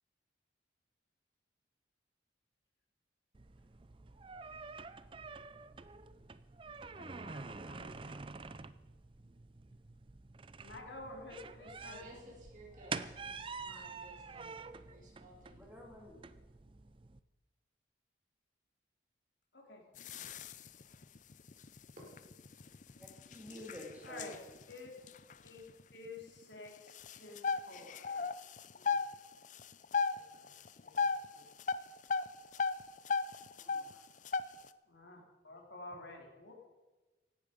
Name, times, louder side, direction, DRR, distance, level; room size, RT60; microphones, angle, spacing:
sound 1, 3.3-17.2, right 4 dB, 30° right, 0.5 m, -48 dB
voice 1, 7.0-8.2 10.6-12.2 19.5-19.8 24.0-24.3 24.7-24.9 25.4-25.6 25.9-28.3 28.7-29.0 30.1-30.5 30.8-31.1 31.3-31.5 34.9-36.5, left 2 dB, 75° left, 1 dB, 3.4 m, -51 dB
voice 2, 11.8-14.6 14.8-15.6 22.9-23.3, equal, 45° right, -2 dB, 5.2 m, -57 dB
voice 3, 15.5-16.2 23.0-24.3 33.6-34.0, equal, 10° right, -1 dB, 3.1 m, -50 dB
sound 2, 20.0-26.1 26.4-26.5 26.9-29.1 29.4-30.2 30.4-31.3 31.6-33.9 34.2-34.7, left 5 dB, 40° left, 0.5 m, -35 dB
16.5 x 12.0 x 5.2 m, 1.2 s
head